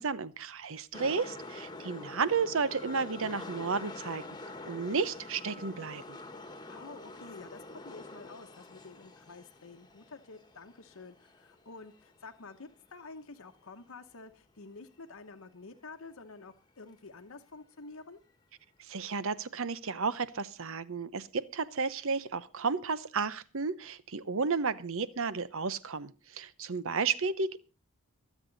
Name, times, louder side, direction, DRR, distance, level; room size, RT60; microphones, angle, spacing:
voice 1, 0.0-4.2 4.7-6.2 18.8-27.6, right 5 dB, 65° right, 15 dB, 0.9 m, -32 dB
sound 1, 0.9-13.0 13.2-13.3, left 2 dB, 20° left, 1.4 m, -46 dB
voice 2, 6.7-18.2, left 3 dB, 65° left, 4 dB, 1.0 m, -49 dB
23.5 x 8.3 x 4.0 m, 0.32 s
head